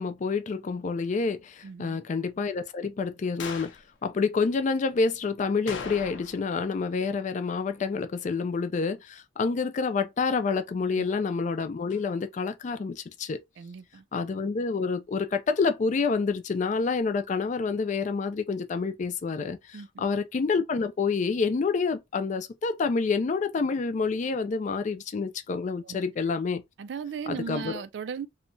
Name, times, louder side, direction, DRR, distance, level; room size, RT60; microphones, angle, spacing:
voice 1, 0.0-13.4 14.1-26.6 27.3-27.8, left 4 dB, 40° left, 0.3 m, -28 dB
voice 2, 1.6-2.0 11.0-11.1 13.6-14.0 19.7-20.1 25.8-26.0 26.8-28.3, right 6 dB, 70° right, 0.3 m, -37 dB
sound 1, 3.4-3.8 5.7-6.5 6.8-6.9 11.9-12.0, left 5 dB, 90° left, 0.6 m, -38 dB
2.8 x 2.1 x 2.6 m
head